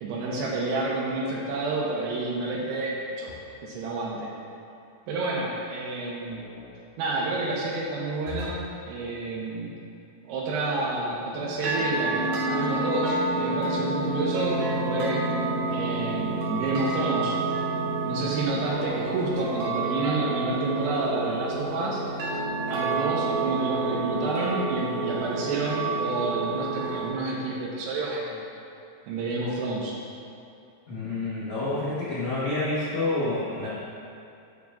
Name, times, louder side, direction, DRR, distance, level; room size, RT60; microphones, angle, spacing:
voice 1, 0.0-2.9 3.2-3.3 3.6-4.3 5.1-6.4 7.0-9.7 10.3-15.2 15.7-17.4 18.0-22.0 22.7-28.5 29.1-29.9, right 2 dB, 90° right, -5 dB, 3.0 m, -29 dB
sound 1, 3.3-3.8 6.3-6.8 8.3-8.8 11.3-12.0, left 3 dB, 80° left, 3.0 m, -42 dB
sound 2, 11.6-27.1, right 3 dB, 70° right, 2.0 m, -29 dB
voice 2, 30.9-33.7, left 2 dB, 65° left, -11 dB, 1.9 m, -28 dB
12.0 x 4.7 x 2.5 m, 2.6 s
omnidirectional pair, 4.7 m